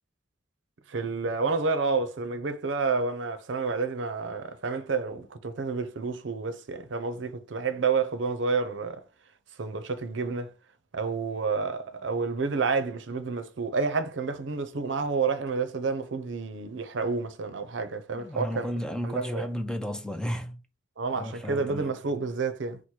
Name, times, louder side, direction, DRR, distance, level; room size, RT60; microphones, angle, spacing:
voice 1, 0.9-9.0 9.6-10.5 10.9-18.7 19.0-19.5 21.0-22.8, right 4 dB, 70° right, 0.6 m, -29 dB
voice 2, 18.1-20.6 21.2-21.9, equal, 5° left, 0.3 m, -33 dB
4.7 x 2.1 x 4.3 m
head